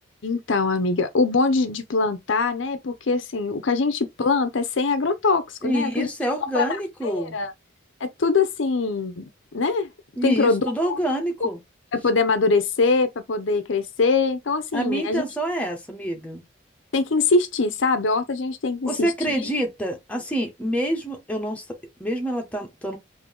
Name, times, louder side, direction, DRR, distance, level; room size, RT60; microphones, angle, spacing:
voice 1, 0.2-6.1 6.5-6.7 7.0-7.5 8.0-9.2 9.5-9.9 10.2-11.0 11.9-15.2 16.9-19.1, left 3 dB, 75° left, 0.6 m, -23 dB
voice 2, 5.6-7.4 10.2-11.6 14.7-16.4 18.8-23.0, right 1 dB, 5° left, 0.9 m, -27 dB
3.7 x 2.7 x 3.5 m
head